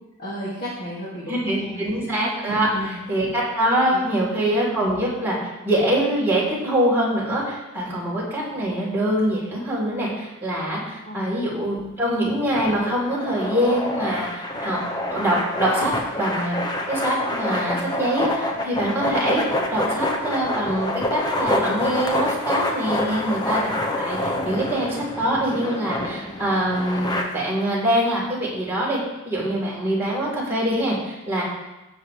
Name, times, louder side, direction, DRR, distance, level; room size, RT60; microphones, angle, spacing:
voice 1, 0.2-1.9 2.5-3.0 3.9-4.3 11.0-11.3, equal, 45° left, -8 dB, 2.6 m, -33 dB
voice 2, 1.3-2.7 3.1-5.4 5.6-14.8 15.1-16.6 16.9-19.4 19.7-29.0 29.2-31.4, right 1 dB, 10° right, -7 dB, 3.8 m, -24 dB
sound 1, 12.5-27.2, left 1 dB, 20° left, 1.0 m, -27 dB
16.5 x 7.2 x 3.4 m, 1.0 s
head